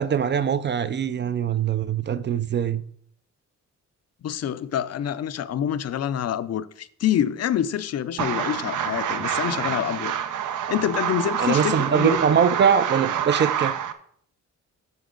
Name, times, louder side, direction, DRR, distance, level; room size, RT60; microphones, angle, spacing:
voice 1, 0.0-2.8 11.4-13.7, right 7 dB, 40° right, 0.4 m, -22 dB
voice 2, 4.2-10.1 10.7-12.2, left 10 dB, 55° left, 0.5 m, -26 dB
sound 1, 8.2-13.9, right 9 dB, 85° right, 0.8 m, -27 dB
10.5 x 6.9 x 3.8 m
wide cardioid pair, 175°, 30 cm